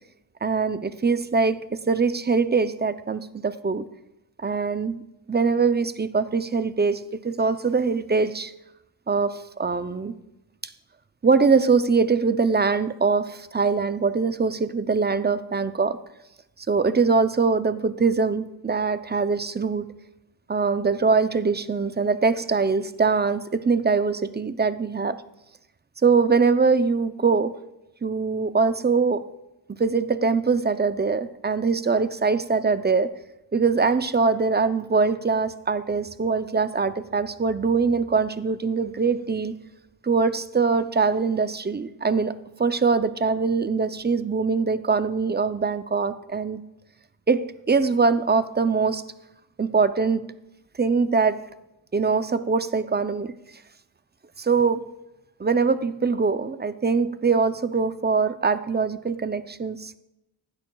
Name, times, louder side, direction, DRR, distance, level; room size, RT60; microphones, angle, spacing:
voice 1, 0.4-3.9 4.4-5.0 5.3-8.5 9.1-10.1 11.2-16.0 16.7-19.9 20.5-25.2 26.0-27.6 28.0-29.2 29.7-33.1 33.5-39.5 40.0-42.3 42.6-46.6 47.3-49.0 49.6-50.3 50.8-51.4 51.9-53.3 54.4-54.9 55.4-60.0, right 4 dB, 25° right, 12 dB, 0.5 m, -23 dB
15.5 x 11.5 x 2.3 m, 0.91 s
wide cardioid pair, 85°, 42 cm